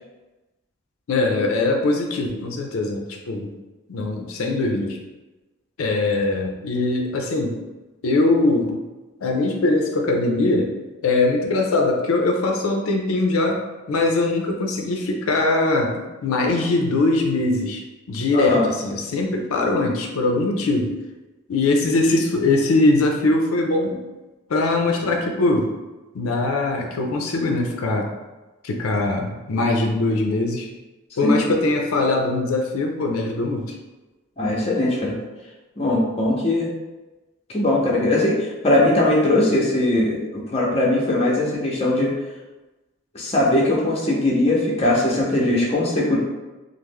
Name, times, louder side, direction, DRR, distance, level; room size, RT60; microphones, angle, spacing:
voice 1, 1.1-3.5 3.9-5.0 5.8-7.6 8.0-8.8 9.2-10.7 11.0-21.0 21.5-24.0 24.5-25.7 26.1-28.1 28.6-30.7 31.2-33.7, left 2 dB, 90° left, 2 dB, 0.4 m, -21 dB
voice 2, 18.3-18.7 31.2-31.4 34.4-35.2 35.8-36.7 37.5-42.1 43.1-46.2, left 1 dB, 30° left, -3 dB, 0.6 m, -20 dB
3.1 x 2.0 x 3.5 m, 1.1 s
head